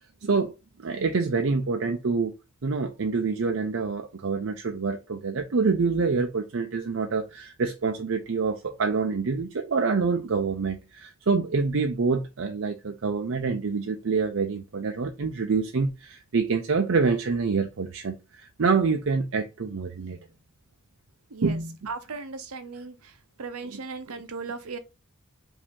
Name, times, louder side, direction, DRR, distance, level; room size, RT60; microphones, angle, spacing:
voice 1, 0.2-0.5 0.8-2.3 2.6-20.2 21.4-21.8 23.6-23.8, right 4 dB, 65° right, 0.5 m, -26 dB
voice 2, 21.9-23.0 23.4-24.8, right 4 dB, 85° right, 0.8 m, -36 dB
5.0 x 2.8 x 3.5 m
head